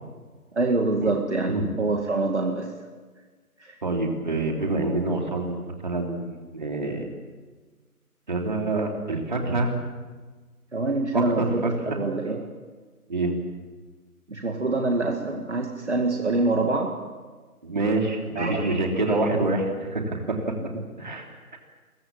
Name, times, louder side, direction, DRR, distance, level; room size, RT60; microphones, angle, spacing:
voice 1, 0.5-2.7 3.6-3.8 10.7-12.5 14.3-17.0 18.4-19.4 20.7-20.8, right 2 dB, 50° right, 3 dB, 2.2 m, -26 dB
voice 2, 3.8-7.1 8.3-9.7 11.1-11.7 13.1-13.3 17.6-20.5 21.0-21.3, right 2 dB, 30° right, 2 dB, 3.1 m, -26 dB
25.0 x 22.5 x 7.3 m, 1.4 s
figure-of-eight pair, 170°, 46 cm